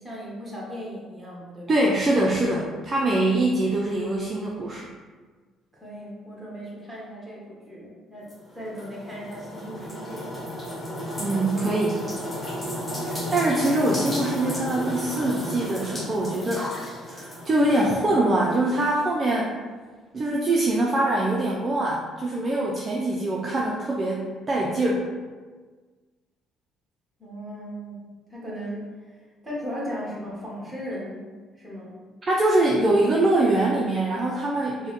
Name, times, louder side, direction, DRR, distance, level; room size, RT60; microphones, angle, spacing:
voice 1, 0.0-1.8 5.7-10.3 27.2-28.9 29.4-31.2 31.6-32.0, equal, 5° right, -6 dB, 1.3 m, -37 dB
voice 2, 1.7-4.9 11.2-12.0 13.0-16.7 17.1-19.5 20.1-25.1 32.3-34.9, right 2 dB, 30° right, -3 dB, 0.4 m, -23 dB
sound 1, 8.3-17.9, equal, 15° left, 0.8 m, -33 dB
4.5 x 2.1 x 3.0 m, 1.4 s
cardioid pair, 110°, 0 cm